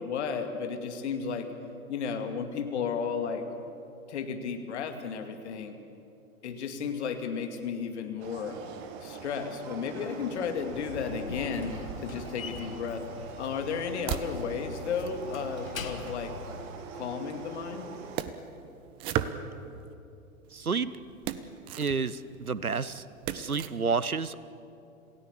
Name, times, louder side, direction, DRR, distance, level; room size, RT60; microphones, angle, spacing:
voice 1, 0.0-1.5 1.9-3.4 4.1-5.7 6.4-8.6 9.0-11.8 12.0-13.1 13.4-16.3 16.9-17.9, left 6 dB, 50° left, 6 dB, 2.4 m, -33 dB
sound 1, 8.2-18.2, right 6 dB, 35° right, 2.1 m, -44 dB
Slam, 10.6-16.7, left 4 dB, 70° left, 1.9 m, -42 dB
sound 2, 11.5-12.6 13.3-16.3 17.2-19.9 20.5-23.7, right 10 dB, 15° right, 0.4 m, -39 dB
voice 2, 20.5-20.9 21.8-23.0 23.3-24.4, right 5 dB, 85° right, 17 dB, 0.9 m, -30 dB
27.5 x 17.0 x 7.3 m, 2.7 s
figure-of-eight pair, 105°, 42 cm